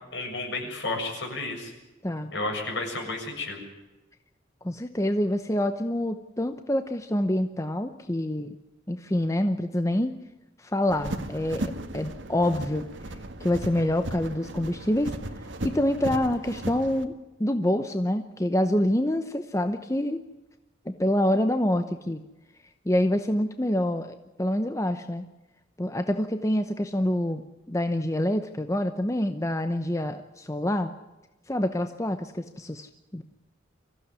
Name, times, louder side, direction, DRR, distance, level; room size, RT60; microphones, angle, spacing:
voice 1, 0.1-1.7 2.3-3.6, left 2 dB, 65° left, 2 dB, 7.2 m, -32 dB
voice 2, 4.6-8.5 8.9-10.1 10.6-12.9 13.4-15.2 15.6-17.1 17.4-20.2 20.9-22.2 22.8-25.2 25.8-27.4 27.7-30.9 31.5-33.2, left 1 dB, 15° left, 8 dB, 0.9 m, -26 dB
sound 1, 10.9-17.0, right 1 dB, 75° right, 1.8 m, -36 dB
25.0 x 15.5 x 9.8 m, 1.1 s
head